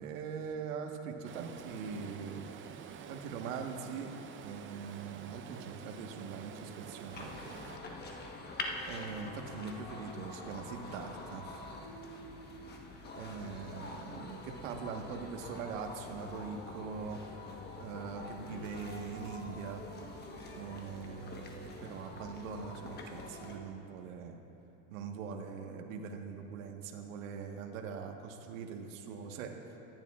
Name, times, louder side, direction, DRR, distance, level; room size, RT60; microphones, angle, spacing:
voice 1, 0.0-2.4 3.1-4.1 4.4-7.3 8.9-11.5 13.1-17.2 17.8-19.8 20.6-24.4 24.9-29.5, right 6 dB, 90° right, 3 dB, 1.4 m, -42 dB
Stream, 1.2-7.8, right 7 dB, 30° right, 0.6 m, -48 dB
sound 1, 7.1-23.6, left 2 dB, 25° left, 1.2 m, -45 dB
24.0 x 11.0 x 2.4 m, 2.9 s
supercardioid pair, 130°, 38 cm